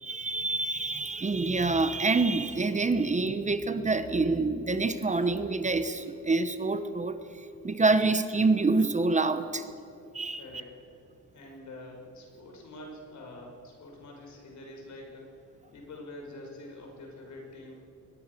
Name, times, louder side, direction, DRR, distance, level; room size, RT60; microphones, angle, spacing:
voice 1, 0.0-7.2 7.6-9.7 10.1-10.4, right 3 dB, 25° right, 10 dB, 1.1 m, -26 dB
voice 2, 10.4-10.7 11.3-15.3 15.7-17.8, left 1 dB, 70° left, 1 dB, 5.8 m, -46 dB
22.5 x 20.5 x 6.9 m, 2.7 s
cardioid pair, 135°, 30 cm